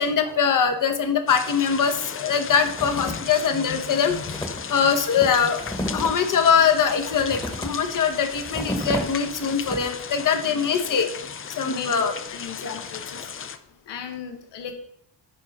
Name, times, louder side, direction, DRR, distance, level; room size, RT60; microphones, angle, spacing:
voice 1, 0.0-5.6 5.9-11.1 11.6-12.1 12.6-12.7, left 6 dB, 45° left, 6 dB, 1.1 m, -22 dB
sound 1, 1.3-13.6, left 7 dB, 30° left, 0.5 m, -36 dB
sound 2, 2.5-3.4 3.7-3.8 4.0-10.1, left 1 dB, 10° left, 1.3 m, -33 dB
voice 2, 10.4-10.7 11.7-13.6 13.8-14.7, left 7 dB, 75° left, 5 dB, 1.2 m, -37 dB
10.0 x 4.3 x 3.6 m, 0.73 s
cardioid pair, 100°, 42 cm